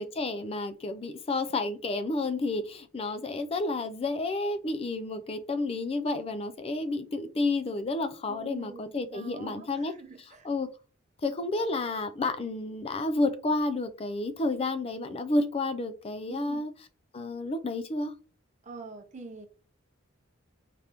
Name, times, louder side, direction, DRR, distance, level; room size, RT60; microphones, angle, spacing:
voice 1, 0.0-9.9 10.4-10.7 11.2-16.7 17.1-18.1, left 2 dB, 30° left, 0.4 m, -30 dB
voice 2, 8.3-10.5 16.3-16.6 18.6-19.5, right 4 dB, 35° right, 0.7 m, -45 dB
5.1 x 3.3 x 2.9 m
head